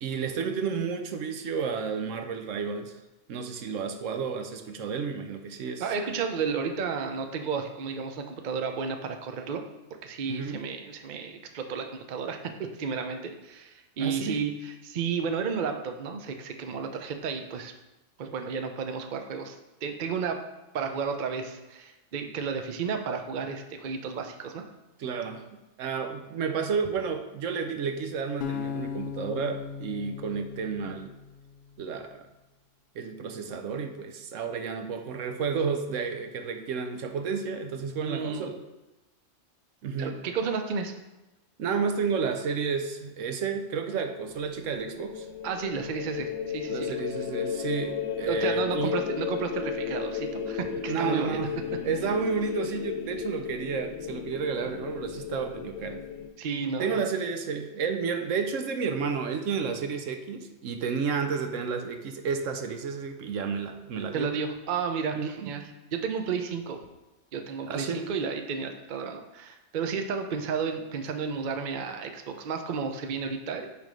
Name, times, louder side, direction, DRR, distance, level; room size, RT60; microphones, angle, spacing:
voice 1, 0.0-3.0 3.3-5.8 10.2-10.7 14.0-14.4 25.0-31.1 31.8-32.3 32.9-38.6 39.8-40.2 41.6-45.3 46.7-49.0 50.9-51.5 51.8-56.0 56.8-64.3 65.1-65.5 67.7-68.0, right 5 dB, 75° right, 6 dB, 1.0 m, -31 dB
voice 2, 5.8-9.6 10.0-17.7 18.2-19.6 19.8-20.4 20.7-24.6 38.0-38.5 40.0-40.9 45.4-46.9 48.3-51.4 56.4-57.0 64.1-65.6 65.9-66.8 67.3-73.7, right 5 dB, 50° right, 5 dB, 0.7 m, -32 dB
sound 1, 28.4-31.6, left 7 dB, 60° left, 0.5 m, -37 dB
sound 2, 44.4-56.3, left 7 dB, 85° left, 1.0 m, -34 dB
9.3 x 3.4 x 5.1 m, 1.0 s
omnidirectional pair, 1.3 m